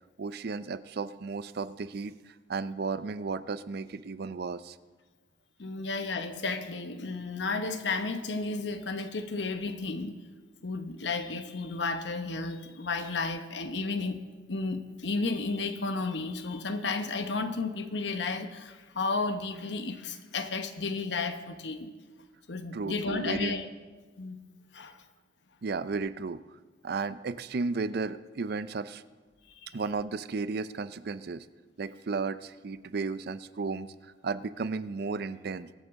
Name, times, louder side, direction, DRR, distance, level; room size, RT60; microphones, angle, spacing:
voice 1, 0.2-4.8 22.7-23.5 25.6-26.4 26.8-29.0 29.7-31.5 31.8-35.7, right 4 dB, 60° right, 15 dB, 0.5 m, -34 dB
voice 2, 5.6-10.2 10.6-14.2 14.5-21.9 22.5-23.7 24.2-24.4 24.7-25.0 29.6-29.8, left 3 dB, 70° left, 8 dB, 0.9 m, -33 dB
23.5 x 8.0 x 3.6 m, 1.3 s
head